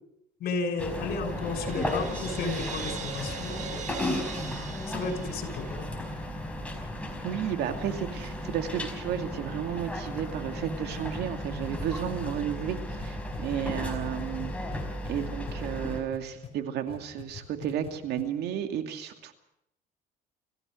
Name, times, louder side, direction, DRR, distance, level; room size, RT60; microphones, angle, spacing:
voice 1, 0.4-3.8 4.9-6.1, left 4 dB, 65° left, 6 dB, 6.2 m, -33 dB
sound 1, 0.8-16.0, left 1 dB, 5° left, 5.0 m, -35 dB
Crash cymbal, 1.2-6.2, right 6 dB, 45° right, 2.0 m, -40 dB
voice 2, 7.2-12.8 13.0-14.5 15.1-19.3, right 9 dB, 75° right, 6 dB, 2.5 m, -32 dB
sound 2, 11.6-16.5 16.9-17.9 18.2-18.3, left 7 dB, 35° left, 5.0 m, -42 dB
27.5 x 15.5 x 6.4 m, 0.80 s
cardioid pair, 110°, 17 cm